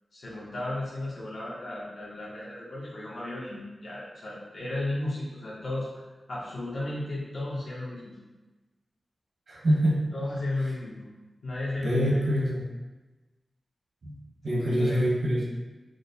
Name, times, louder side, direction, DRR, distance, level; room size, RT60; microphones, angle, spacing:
voice 1, 0.1-6.0 6.3-8.2 10.1-11.0 11.4-12.2 14.5-15.0, left 2 dB, 75° left, -7 dB, 0.9 m, -34 dB
voice 2, 9.5-10.0 11.8-12.6 14.0-14.1 14.4-15.5, equal, 80° right, -3 dB, 1.0 m, -25 dB
4.9 x 2.0 x 2.7 m, 1.2 s
cardioid pair, 50°, 0 cm